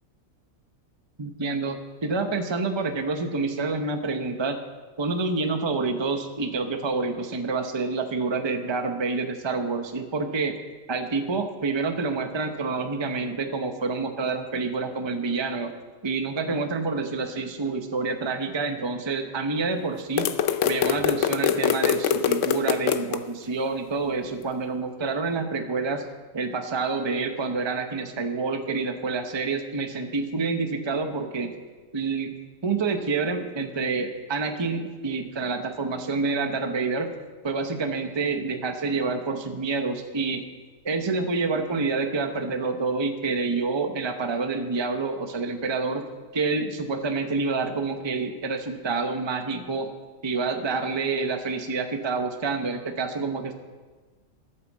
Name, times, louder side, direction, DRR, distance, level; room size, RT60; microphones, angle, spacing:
voice 1, 1.2-4.6 5.0-10.5 10.9-15.7 16.0-20.3 20.6-26.0 26.3-31.5 31.9-32.3 32.6-37.1 37.4-40.4 40.8-46.0 46.3-49.9 50.2-53.5, right 4 dB, 25° right, 5 dB, 0.8 m, -28 dB
sound 1, 20.2-23.2, left 9 dB, 70° left, 1.0 m, -23 dB
11.5 x 9.2 x 7.3 m, 1.3 s
omnidirectional pair, 1.4 m